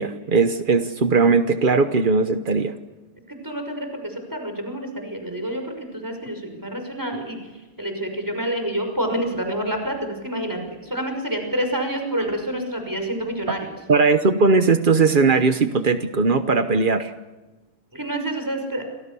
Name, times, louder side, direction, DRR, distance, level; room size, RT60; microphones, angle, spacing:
voice 1, 0.0-2.7 13.9-17.1, right 4 dB, 45° right, 9 dB, 0.6 m, -19 dB
voice 2, 3.4-7.4 7.8-13.7 17.9-18.8, right 1 dB, 10° right, 4 dB, 6.0 m, -28 dB
30.0 x 26.5 x 7.0 m, 1.2 s
omnidirectional pair, 2.4 m